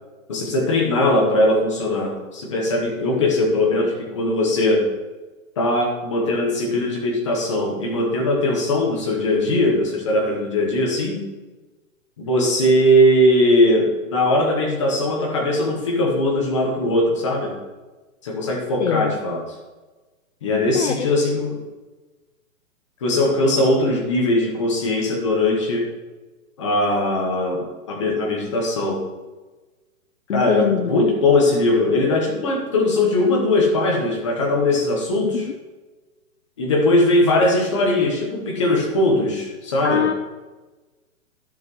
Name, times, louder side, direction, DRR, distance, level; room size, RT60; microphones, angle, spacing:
voice 1, 0.3-4.9 5.6-11.2 12.2-17.5 18.2-19.4 20.4-21.6 23.0-25.9 26.6-29.0 30.3-35.5 36.6-40.1, left 1 dB, 20° left, 1 dB, 1.1 m, -20 dB
voice 2, 18.8-19.2 20.7-21.1 30.3-31.0 35.2-35.5 39.8-40.1, left 8 dB, 55° left, 8 dB, 0.5 m, -23 dB
13.0 x 5.7 x 3.1 m, 1.2 s
hypercardioid pair, 180°, 42 cm